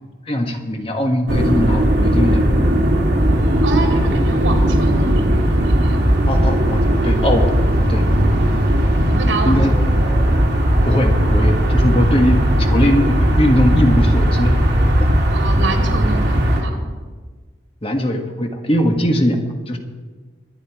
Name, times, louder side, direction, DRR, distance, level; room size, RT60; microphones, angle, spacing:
voice 1, 0.3-2.4 6.3-7.5 7.9-8.0 9.4-9.7 10.8-13.0 13.4-14.6 17.8-19.4 19.7-19.8, equal, 30° left, 4 dB, 1.4 m, -19 dB
sound 1, 1.3-16.6, equal, 60° right, 3.0 m, -16 dB
voice 2, 3.6-6.0 8.7-9.9 15.3-16.9, right 3 dB, 80° right, 2 dB, 3.0 m, -27 dB
23.5 x 9.8 x 4.7 m, 1.4 s
head